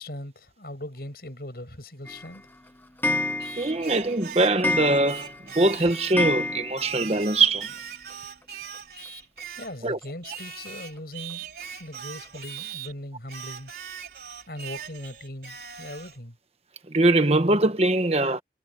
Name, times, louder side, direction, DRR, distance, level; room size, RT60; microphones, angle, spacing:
voice 1, 0.0-2.4 9.6-11.5 11.8-13.7 14.5-16.4, left 1 dB, 60° left, 7.0 m, -39 dB
Clock, 2.1-7.1 7.5-7.6 7.8-7.9 8.1-8.2 9.4-9.5 10.0-10.1 10.7-10.8 11.3-11.4 11.9-12.0 12.6-12.7, left 2 dB, 10° left, 1.2 m, -30 dB
Singing, 3.4-6.3 6.8-9.8 10.2-12.9 13.3-16.2, right 7 dB, 55° right, 4.2 m, -40 dB
voice 2, 3.6-7.7 9.8-10.0 16.9-18.4, right 2 dB, 35° right, 1.3 m, -22 dB
head